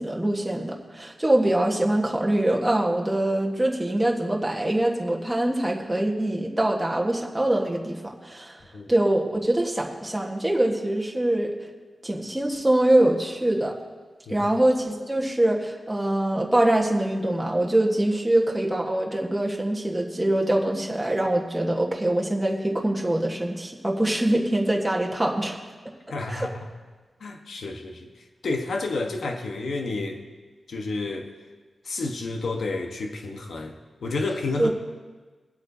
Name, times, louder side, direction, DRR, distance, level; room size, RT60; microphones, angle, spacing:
voice 1, 0.0-8.6 8.9-11.5 12.0-13.7 14.3-25.6 26.3-26.5 34.6-34.7, right 1 dB, 10° right, -1 dB, 1.4 m, -24 dB
voice 2, 26.1-26.7 27.2-28.1 28.4-30.2 30.7-31.3 31.8-33.7 34.0-34.7, left 3 dB, 75° left, 3 dB, 1.2 m, -30 dB
23.0 x 8.2 x 2.8 m, 1.4 s
wide cardioid pair, 125°, 0 cm